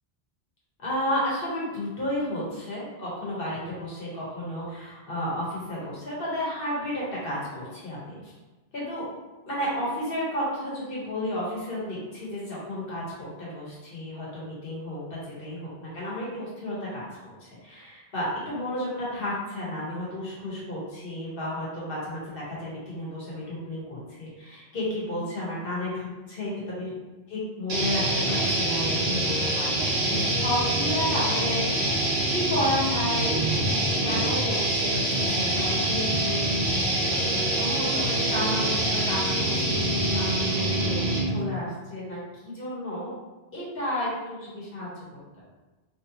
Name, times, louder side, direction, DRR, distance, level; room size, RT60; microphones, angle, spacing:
voice 1, 0.8-8.3 8.7-9.1 9.5-26.9 27.3-31.8 32.3-33.3 34.0-36.7 37.0-42.2 42.4-43.1 43.5-45.0, left 1 dB, 60° left, -6 dB, 1.3 m, -32 dB
sound 1, 27.7-41.4, right 1 dB, 80° right, 1.1 m, -25 dB
3.1 x 2.7 x 2.8 m, 1.1 s
omnidirectional pair, 1.1 m